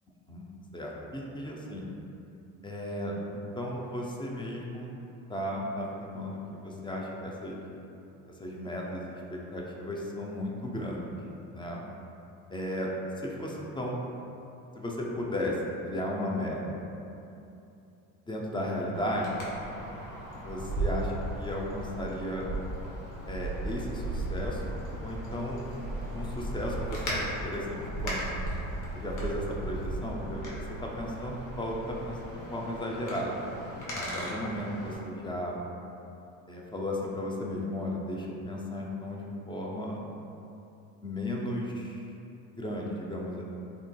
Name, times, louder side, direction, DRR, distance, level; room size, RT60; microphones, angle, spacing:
voice 1, 0.7-1.9 2.6-5.0 5.3-7.6 8.4-11.1 11.5-11.8 12.5-12.9 13.2-14.0 14.7-15.6 15.8-16.6 18.3-19.4 20.4-22.5 23.3-25.8 26.1-28.3 28.9-33.3 33.9-35.6 36.5-40.0 41.0-42.0 42.5-43.4, left 1 dB, 15° left, -2 dB, 0.3 m, -35 dB
Wind, 18.9-35.0, right 1 dB, 50° left, 0.9 m, -36 dB
3.8 x 2.4 x 2.2 m, 2.8 s
hypercardioid pair, 70°, 40 cm